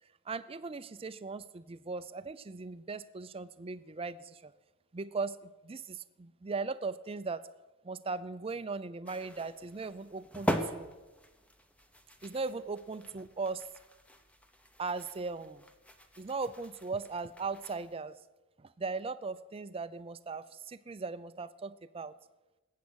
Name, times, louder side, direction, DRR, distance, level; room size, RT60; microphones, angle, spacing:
voice 1, 0.3-4.5 4.9-7.5 7.8-10.9 12.2-13.7 14.8-15.6 16.2-18.2 18.6-22.1, right 4 dB, 25° right, 13 dB, 0.5 m, -38 dB
sound 1, 9.1-18.0, equal, 5° left, 0.8 m, -41 dB
19.5 x 8.4 x 6.3 m, 1.1 s
head